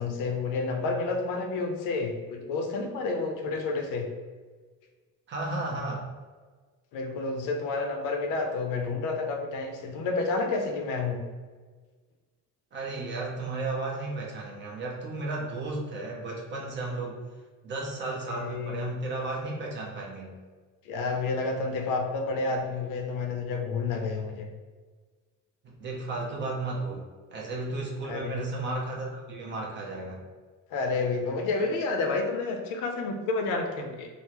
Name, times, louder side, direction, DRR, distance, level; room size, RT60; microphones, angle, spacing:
voice 1, 0.0-4.1 6.9-11.2 18.3-18.9 20.8-24.5 28.0-28.4 30.7-34.1, left 3 dB, 70° left, 4 dB, 0.5 m, -30 dB
voice 2, 5.3-6.1 12.7-17.2 17.6-20.3 25.6-27.0 27.3-30.2, right 2 dB, 35° right, -2 dB, 0.6 m, -34 dB
3.6 x 2.0 x 2.9 m, 1.4 s
cardioid pair, 150°, 33 cm